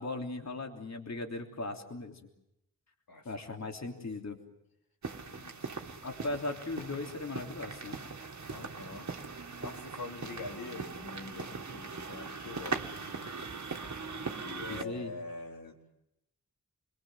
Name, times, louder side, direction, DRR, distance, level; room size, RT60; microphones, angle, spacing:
voice 1, 0.0-2.2 3.2-4.4 6.0-8.0 14.7-15.1, left 2 dB, 50° left, 3 dB, 3.3 m, -38 dB
sound 1, 5.0-14.8, right 4 dB, 55° right, 2.3 m, -40 dB
voice 2, 5.3-5.8 8.5-9.2 9.6-13.3 14.4-15.8, left 3 dB, 80° left, 2 dB, 4.3 m, -45 dB
29.0 x 22.0 x 7.7 m, 0.85 s
wide cardioid pair, 90°, 34 cm